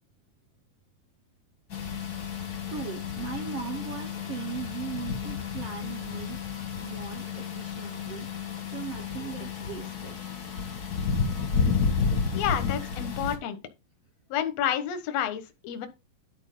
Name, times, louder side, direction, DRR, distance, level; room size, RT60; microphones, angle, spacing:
sound 1, 1.7-13.4, left 5 dB, 40° left, 1.5 m, -31 dB
voice 1, 2.7-6.4 6.8-8.3 8.6-10.3 12.2-12.3 12.8-12.9, right 7 dB, 80° right, 1.3 m, -39 dB
voice 2, 12.3-13.6 14.3-15.9, left 10 dB, 60° left, 1.8 m, -30 dB
10.5 x 4.1 x 5.4 m
omnidirectional pair, 4.2 m